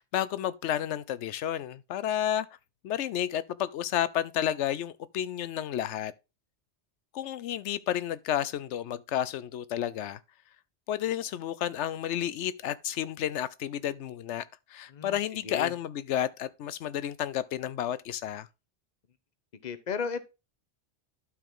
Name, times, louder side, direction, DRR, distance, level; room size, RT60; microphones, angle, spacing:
voice 1, 0.0-2.5 2.8-6.1 7.1-10.2 10.9-14.4 14.7-18.5, left 11 dB, 85° left, 0.9 m, -31 dB
voice 2, 19.6-20.2, left 6 dB, 40° left, 0.9 m, -34 dB
12.0 x 4.7 x 3.7 m
omnidirectional pair, 1.2 m